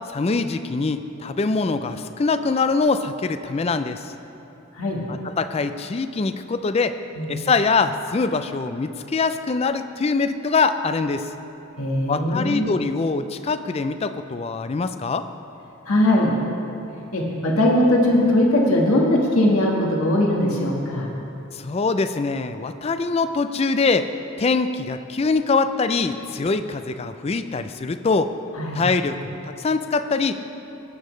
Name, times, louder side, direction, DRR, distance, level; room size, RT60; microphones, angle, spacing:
voice 1, 0.1-4.1 5.1-7.0 7.3-11.3 12.1-15.3 21.5-24.1 24.4-28.3 28.7-30.4, left 4 dB, 30° left, 10 dB, 0.3 m, -23 dB
voice 2, 11.8-12.7 15.9-16.3 17.1-21.1 28.6-28.8, left 1 dB, 90° left, -2 dB, 1.5 m, -20 dB
18.0 x 8.3 x 3.2 m, 2.9 s
head